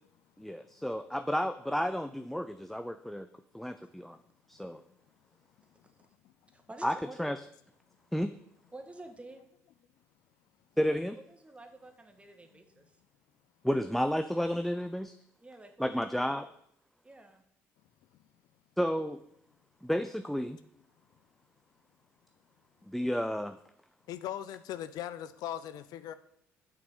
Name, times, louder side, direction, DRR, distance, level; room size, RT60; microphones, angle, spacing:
voice 1, 0.4-3.3 3.5-4.2 4.5-4.8 6.8-7.4 8.1-8.3 10.8-11.2 13.6-15.1 15.8-16.5 18.8-19.2 19.8-20.6 22.9-23.6, equal, ahead, 0.6 m, -31 dB
voice 2, 6.5-7.2 8.7-9.4 10.7-13.0 15.4-16.5 17.0-17.4, right 2 dB, 15° right, 1.8 m, -50 dB
voice 3, 24.1-26.1, left 11 dB, 65° left, 0.5 m, -39 dB
7.4 x 6.0 x 7.5 m
hypercardioid pair, 50°, 7 cm